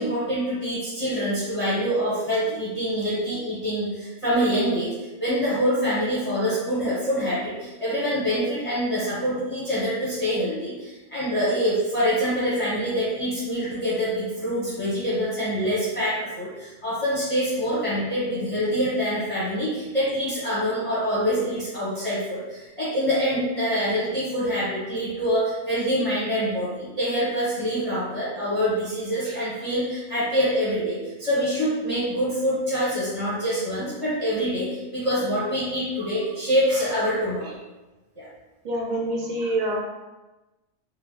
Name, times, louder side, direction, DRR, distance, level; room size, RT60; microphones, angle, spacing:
voice 1, 0.0-4.9 5.2-37.6 38.2-38.3, equal, 30° left, -11 dB, 0.9 m, -25 dB
voice 2, 38.6-39.8, right 1 dB, 50° right, -1 dB, 0.6 m, -26 dB
3.5 x 2.3 x 3.0 m, 1.1 s
omnidirectional pair, 1.2 m